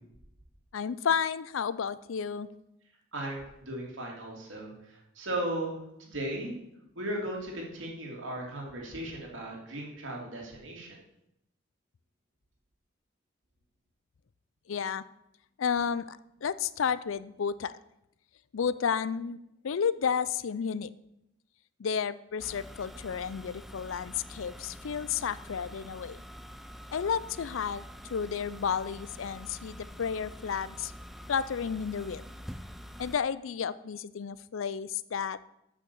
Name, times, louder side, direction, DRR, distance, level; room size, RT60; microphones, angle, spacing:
voice 1, 0.7-2.5 14.7-15.0 15.6-17.7 18.5-19.4 19.6-20.9 21.8-26.2 26.9-27.8 28.1-30.9 31.3-32.2 33.0-35.4, left 7 dB, 85° left, 17 dB, 0.5 m, -32 dB
voice 2, 3.1-6.5 7.0-11.0, right 1 dB, 75° right, -1 dB, 2.7 m, -37 dB
sound 1, 22.4-33.2, equal, ahead, 0.4 m, -46 dB
8.5 x 6.4 x 6.9 m, 0.83 s
head